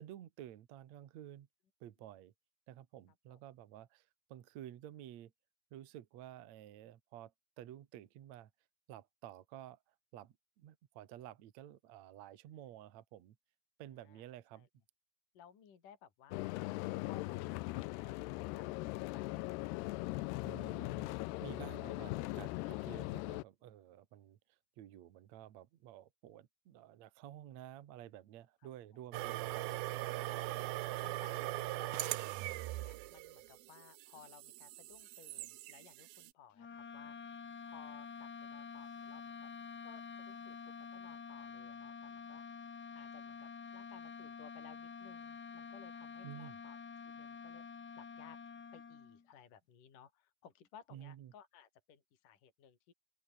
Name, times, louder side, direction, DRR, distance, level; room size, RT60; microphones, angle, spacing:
voice 1, 0.0-1.5 1.8-2.3 2.7-5.3 5.7-7.3 7.6-8.5 8.9-9.8 10.1-13.4 13.8-14.7 20.4-21.1 21.4-24.4 24.8-29.9 46.2-46.6 50.9-51.3, right 12 dB, 65° right, 1.7 m, -52 dB
voice 2, 15.3-19.5 28.6-28.7 30.1-32.3 32.8-37.2 37.6-39.5 39.8-42.4 42.9-46.8 47.1-47.7 48.0-48.4 48.7-52.9, left 8 dB, 45° left, 4.5 m, -60 dB
sound 1, 16.3-23.4, left 21 dB, 85° left, 2.4 m, -40 dB
sound 2, 29.1-36.3, right 17 dB, 85° right, 2.1 m, -41 dB
sound 3, 36.5-49.3, left 5 dB, 65° left, 0.9 m, -48 dB
open air
omnidirectional pair, 5.4 m